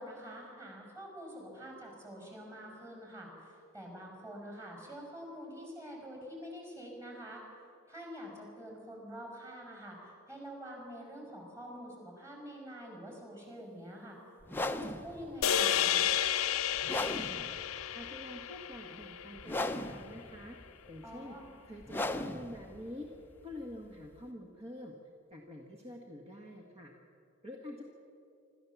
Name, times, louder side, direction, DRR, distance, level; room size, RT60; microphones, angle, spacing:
voice 1, 0.0-7.4 7.9-14.2 14.7-16.1 21.0-21.5, equal, 15° right, 0 dB, 5.7 m, -46 dB
sound 1, 14.4-24.3, left 2 dB, 10° left, 0.7 m, -39 dB
sound 2, 15.4-19.8, left 10 dB, 80° left, 0.6 m, -32 dB
voice 2, 17.9-20.6 20.9-21.4 21.6-23.1 23.4-24.9 25.3-26.9 27.4-27.8, left 1 dB, 30° right, 0 dB, 1.6 m, -46 dB
26.0 x 13.5 x 7.2 m, 2.6 s
head